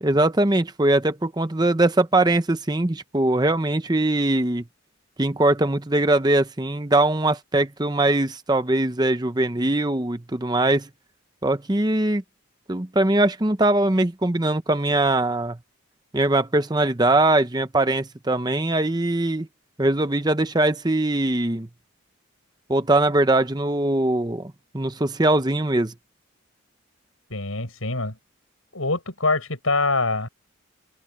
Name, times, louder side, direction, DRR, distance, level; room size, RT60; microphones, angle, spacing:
voice 1, 0.0-4.6 5.2-10.9 11.4-12.2 12.7-15.6 16.1-19.5 19.8-21.7 22.7-25.9, right 2 dB, 20° right, 0.8 m, -21 dB
voice 2, 27.3-28.2 28.7-30.3, left 3 dB, 80° left, 7.6 m, -24 dB
open air
head